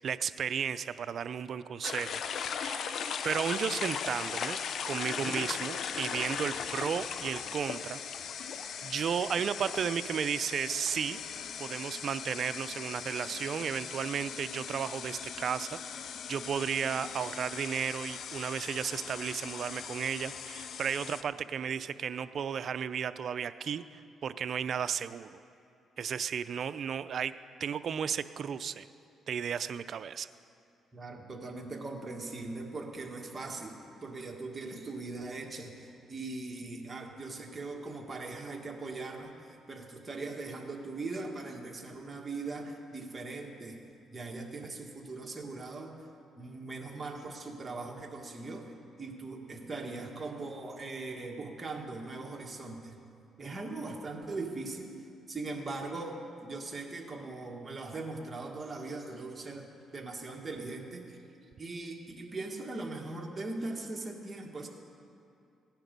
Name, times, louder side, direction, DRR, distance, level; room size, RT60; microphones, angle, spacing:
voice 1, 0.0-2.2 2.6-3.0 3.2-4.6 4.8-8.0 8.8-11.2 11.6-25.4 26.0-27.3 27.6-28.9 29.3-30.3, right 7 dB, 55° right, 13 dB, 0.4 m, -34 dB
sound 1, 1.8-21.2, left 7 dB, 65° left, 0.6 m, -38 dB
voice 2, 30.9-43.8 44.1-46.0 46.4-53.0 53.4-54.9 55.3-59.7 59.9-61.2 61.6-64.7, right 3 dB, 25° right, 1 dB, 1.8 m, -40 dB
16.5 x 10.5 x 5.3 m, 2.5 s
cardioid pair, 90°, 0 cm